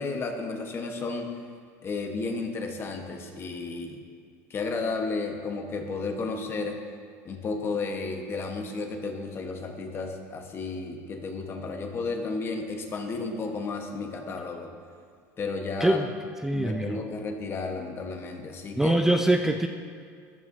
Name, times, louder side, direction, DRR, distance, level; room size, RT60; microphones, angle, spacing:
voice 1, 0.0-1.3 1.8-4.0 4.5-6.8 7.2-14.7 15.4-16.0 16.5-19.0, left 3 dB, 30° left, 4 dB, 1.3 m, -33 dB
voice 2, 16.4-17.0 18.8-19.7, right 1 dB, 5° right, 5 dB, 0.4 m, -23 dB
14.5 x 11.0 x 2.8 m, 2.1 s
supercardioid pair, 120°, 8 cm